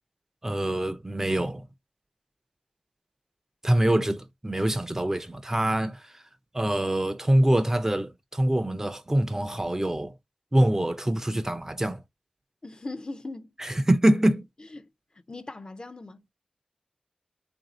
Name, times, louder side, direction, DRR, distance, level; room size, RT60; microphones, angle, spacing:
voice 1, 0.4-1.7 3.6-6.0 6.5-10.1 10.5-12.0 13.6-14.5, right 1 dB, 20° right, 0.5 m, -24 dB
voice 2, 12.6-13.5 14.7-14.9 15.1-16.2, left 2 dB, 35° left, 0.5 m, -39 dB
3.2 x 2.6 x 4.2 m
wide cardioid pair, 85°, 3 cm